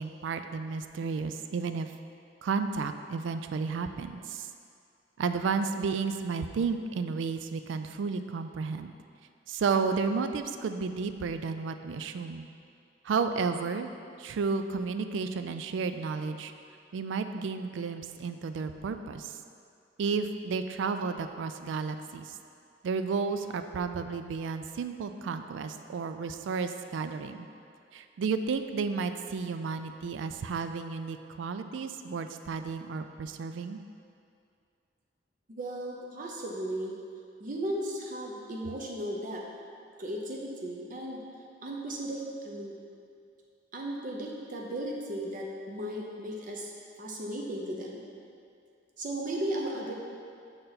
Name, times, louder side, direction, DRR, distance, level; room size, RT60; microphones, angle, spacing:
voice 1, 0.0-1.9 2.4-4.5 5.2-8.9 9.5-12.5 13.0-13.9 14.2-16.5 16.9-19.4 20.0-22.4 22.8-27.5 27.9-33.8, right 5 dB, 75° right, 9 dB, 0.3 m, -32 dB
voice 2, 35.5-37.0 37.4-39.4 40.0-41.2 41.6-42.8 43.7-46.7 47.0-48.0 49.0-49.9, right 1 dB, 45° right, -1 dB, 0.6 m, -35 dB
6.4 x 4.4 x 4.0 m, 2.4 s
head